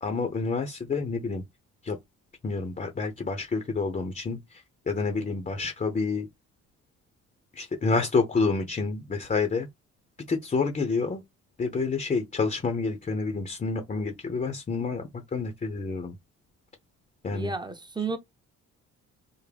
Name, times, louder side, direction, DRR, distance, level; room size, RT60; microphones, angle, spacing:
voice 1, 0.0-1.4 1.8-2.0 2.4-4.4 4.9-6.3 7.6-9.7 10.3-11.2 11.6-16.2 17.2-17.5, left 4 dB, 25° left, 0.7 m, -28 dB
voice 2, 17.3-18.2, right 4 dB, 15° right, 0.7 m, -32 dB
3.6 x 2.1 x 3.3 m
cardioid pair, 90°, 30 cm